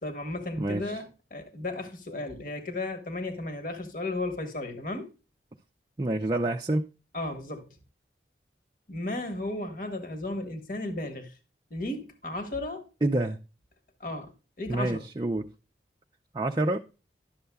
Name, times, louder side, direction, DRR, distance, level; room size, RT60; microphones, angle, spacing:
voice 1, 0.0-5.1 7.1-7.8 8.9-11.4 11.7-12.9 14.0-15.0, left 2 dB, 50° left, 1.3 m, -34 dB
voice 2, 6.0-6.9 13.0-13.4 14.7-15.5 16.3-16.8, right 2 dB, 25° right, 0.4 m, -27 dB
11.5 x 6.7 x 2.3 m
head